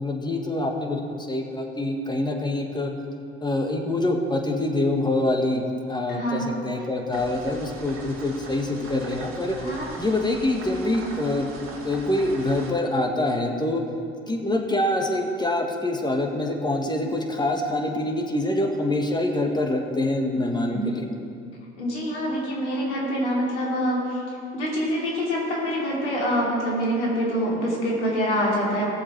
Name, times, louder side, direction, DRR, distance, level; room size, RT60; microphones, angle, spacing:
voice 1, 0.0-2.9 3.4-9.6 10.0-11.5 11.8-13.8 14.3-21.1, left 1 dB, 10° left, 2 dB, 1.7 m, -25 dB
voice 2, 6.1-6.5 9.6-9.8 20.7-20.9 21.8-24.2 24.5-28.9, equal, 85° left, -3 dB, 3.0 m, -25 dB
sound 1, 7.1-12.7, right 3 dB, 40° right, 2.1 m, -40 dB
17.5 x 7.2 x 4.7 m, 2.4 s
hypercardioid pair, 70°, 34 cm